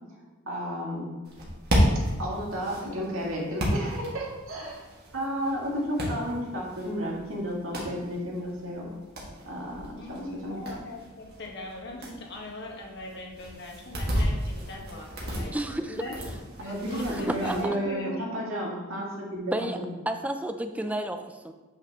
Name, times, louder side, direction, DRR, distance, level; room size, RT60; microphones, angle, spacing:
voice 1, 0.5-1.1 2.2-4.7 5.1-8.9 9.5-10.6 16.6-19.5, equal, 75° right, -4 dB, 2.1 m, -32 dB
sound 1, 1.2-17.7, equal, 50° right, 1.8 m, -33 dB
voice 2, 9.9-15.5 15.9-16.2 16.6-18.2, left 1 dB, 55° left, -1 dB, 1.4 m, -40 dB
voice 3, 15.5-16.0 17.1-17.6 19.5-19.8 20.1-21.5, right 1 dB, 5° right, 7 dB, 0.4 m, -31 dB
8.8 x 5.8 x 3.0 m, 1.3 s
head